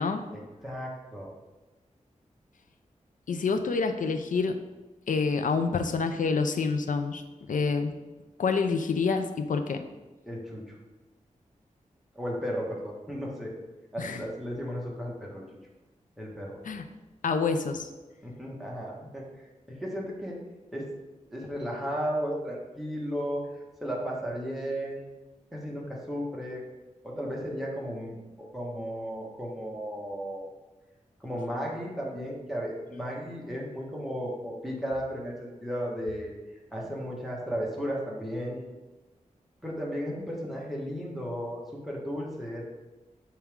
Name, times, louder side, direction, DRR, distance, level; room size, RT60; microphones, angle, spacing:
voice 1, 0.3-1.3 10.3-10.7 12.1-13.5 13.9-15.4 16.2-16.6 18.2-19.2 19.7-20.4 20.7-20.9 21.3-23.4 23.8-25.1 25.5-26.6 27.0-30.4 31.2-36.3 36.7-38.6 39.6-42.7, equal, ahead, -4 dB, 1.6 m, -34 dB
voice 2, 3.3-4.5 5.1-7.2 7.5-7.9 8.4-9.8 14.0-14.2 16.7-16.8 17.2-17.9, left 4 dB, 80° left, 7 dB, 0.6 m, -27 dB
7.2 x 4.4 x 3.6 m, 1.2 s
wide cardioid pair, 80°, 13 cm